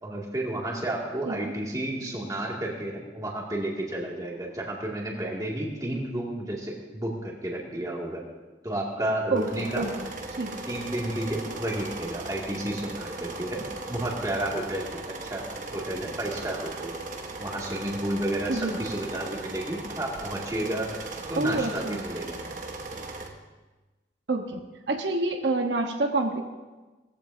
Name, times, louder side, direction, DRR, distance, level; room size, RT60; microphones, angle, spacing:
voice 1, 0.0-8.2 8.6-9.9 10.7-17.0 17.4-20.9 21.3-22.4, right 1 dB, 20° right, -3 dB, 2.3 m, -31 dB
sound 1, 9.4-23.3, right 2 dB, 45° right, 1.2 m, -38 dB
voice 2, 21.4-22.0 24.3-24.6 24.9-26.4, right 2 dB, 90° right, 3 dB, 1.1 m, -27 dB
19.0 x 14.5 x 2.7 m, 1.2 s
head